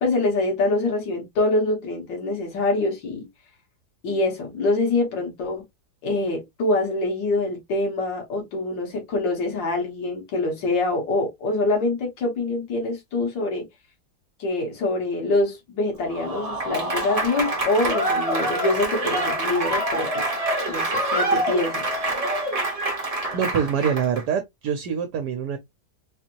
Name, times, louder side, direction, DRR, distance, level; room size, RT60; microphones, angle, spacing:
voice 1, 0.0-3.3 4.0-5.6 6.0-13.6 14.4-20.2 20.7-21.8, left 2 dB, 85° left, 2.1 m, -25 dB
Applause / Crowd, 16.0-24.2, right 1 dB, 25° right, 0.9 m, -26 dB
voice 2, 23.3-25.6, right 7 dB, 70° right, 1.2 m, -25 dB
4.1 x 2.7 x 2.8 m
omnidirectional pair, 1.9 m